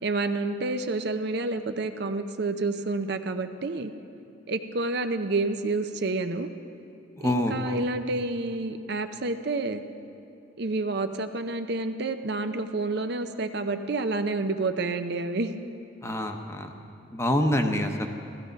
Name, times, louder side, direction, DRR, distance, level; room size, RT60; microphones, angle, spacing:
voice 1, 0.0-3.9 4.5-6.5 7.2-9.8 10.6-15.5, right 3 dB, 60° right, 8 dB, 0.7 m, -29 dB
voice 2, 7.2-7.8 16.0-16.7 17.1-18.1, left 1 dB, 15° left, 4 dB, 0.9 m, -26 dB
15.0 x 15.0 x 5.2 m, 2.8 s
head